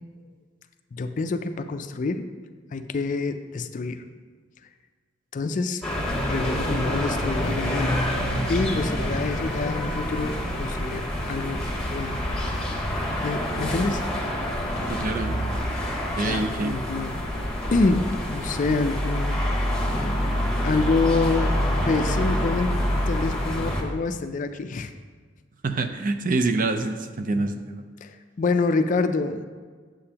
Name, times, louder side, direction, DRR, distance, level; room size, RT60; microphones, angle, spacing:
voice 1, 0.9-2.3 2.7-4.0 5.3-5.8 6.3-8.0 8.5-11.6 11.9-12.2 12.5-12.6 13.2-14.0 16.2-17.2 17.7-19.4 20.6-21.6 21.8-22.7 23.1-24.9 28.0-29.5, left 3 dB, 40° left, 9 dB, 0.4 m, -26 dB
sound 1, 5.8-23.8, equal, 5° left, 1.0 m, -27 dB
voice 2, 14.9-15.4 16.2-16.8 25.6-27.8, right 3 dB, 45° right, 8 dB, 0.5 m, -26 dB
8.7 x 7.5 x 2.8 m, 1.5 s
head